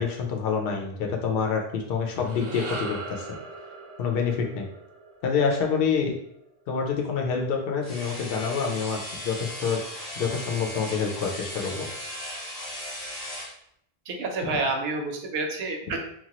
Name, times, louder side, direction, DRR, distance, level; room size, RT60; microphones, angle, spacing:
voice 1, 0.0-3.3 4.0-4.7 5.2-6.1 6.7-9.8 10.2-11.9, left 6 dB, 65° left, 1 dB, 0.7 m, -27 dB
sound 1, 1.9-6.4, right 3 dB, 40° right, 0.5 m, -40 dB
sound 2, 7.8-13.5, left 1 dB, 35° left, 0.8 m, -37 dB
voice 2, 14.1-16.0, right 3 dB, 75° right, 3 dB, 0.8 m, -29 dB
2.9 x 2.3 x 2.8 m, 0.72 s
omnidirectional pair, 1.1 m